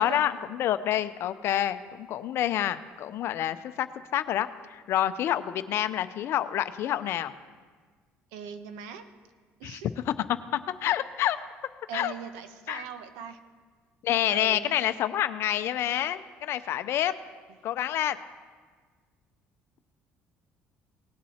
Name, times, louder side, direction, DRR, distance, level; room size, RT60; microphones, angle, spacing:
voice 1, 0.0-3.9 4.1-7.3 9.6-9.8 10.8-11.4 11.9-12.1 12.7-12.8 14.0-17.1 17.6-18.2, left 11 dB, 65° left, 12 dB, 0.6 m, -28 dB
voice 2, 8.3-9.1 9.6-9.9 11.9-13.4 14.3-14.7, right 7 dB, 90° right, 9 dB, 0.9 m, -40 dB
18.5 x 7.5 x 4.3 m, 1.5 s
supercardioid pair, 80°, 5 cm